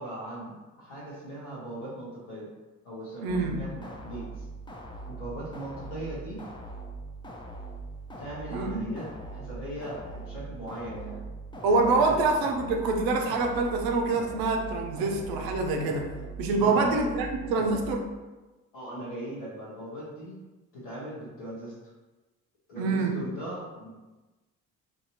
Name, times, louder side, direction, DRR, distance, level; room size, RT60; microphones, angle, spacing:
voice 1, 0.0-2.5 2.8-4.5 5.1-6.4 8.2-11.2 11.7-12.1 16.5-16.9 18.7-20.4 20.7-21.7 22.7-23.9, right 1 dB, 90° left, -7 dB, 1.3 m, -39 dB
voice 2, 3.2-3.6 8.5-8.9 11.6-16.1 16.4-18.1 22.7-23.3, right 3 dB, 65° right, 3 dB, 0.6 m, -26 dB
sound 1, 3.3-18.0, right 2 dB, 10° left, 0.5 m, -41 dB
3.0 x 2.7 x 2.8 m, 1.1 s
hypercardioid pair, 50°, 40 cm